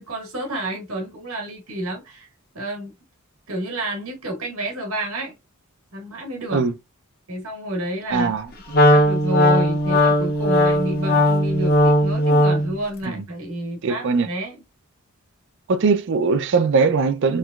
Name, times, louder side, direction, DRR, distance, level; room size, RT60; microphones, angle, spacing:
voice 1, 0.0-2.3 2.5-2.9 3.5-5.3 5.9-6.6 7.3-8.3 8.9-14.6, right 1 dB, 70° right, 1.2 m, -29 dB
voice 2, 8.1-8.5 13.0-13.2 13.8-14.3 15.7-17.4, right 4 dB, 55° right, 0.4 m, -20 dB
Wind instrument woodwind instrument, 8.7-12.8, left 1 dB, 45° left, 0.7 m, -17 dB
3.1 x 3.0 x 2.3 m
head